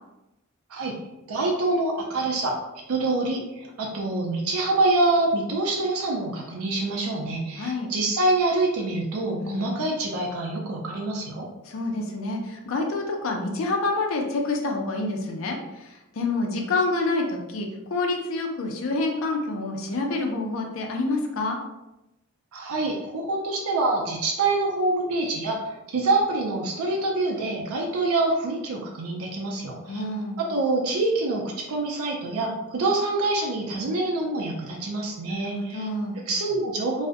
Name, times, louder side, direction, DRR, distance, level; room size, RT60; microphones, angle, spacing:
voice 1, 1.3-2.6 2.9-11.5 22.5-30.0 30.4-35.9 36.2-37.1, right 2 dB, 80° right, 0 dB, 0.4 m, -26 dB
voice 2, 7.6-7.9 9.4-9.8 11.7-21.6 29.9-30.4 35.3-36.2, left 2 dB, 65° left, 2 dB, 0.4 m, -28 dB
2.4 x 2.0 x 2.5 m, 0.95 s
head